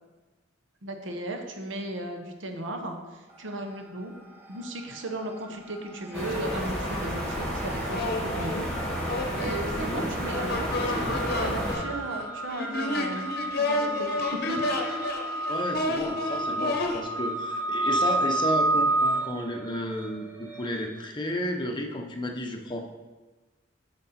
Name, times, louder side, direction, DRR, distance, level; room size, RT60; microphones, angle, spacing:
voice 1, 0.8-4.1 4.5-8.7 9.3-10.9 11.4-13.3 13.6-14.7, right 1 dB, 75° right, 4 dB, 1.0 m, -35 dB
sound 1, 3.3-4.0 4.3-20.9, right 2 dB, 10° right, 0.6 m, -32 dB
sound 2, 5.5-5.6 5.9-7.2 7.9-17.0, left 2 dB, 55° left, 0.8 m, -31 dB
sound 3, 6.1-11.7, equal, 5° left, 2.1 m, -31 dB
voice 2, 9.7-10.1 15.5-22.9, left 1 dB, 25° left, 2 dB, 0.7 m, -33 dB
7.7 x 5.3 x 4.2 m, 1.2 s
head